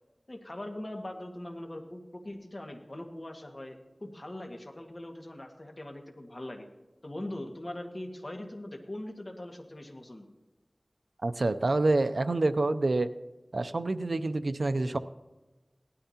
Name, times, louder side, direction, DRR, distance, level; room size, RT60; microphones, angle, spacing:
voice 1, 0.3-6.7 7.0-10.3, left 1 dB, 45° left, 3 dB, 1.8 m, -41 dB
voice 2, 11.2-13.1 13.5-15.0, right 2 dB, 80° right, 11 dB, 0.5 m, -27 dB
18.5 x 12.5 x 2.9 m, 1.1 s
wide cardioid pair, 55°, 0 cm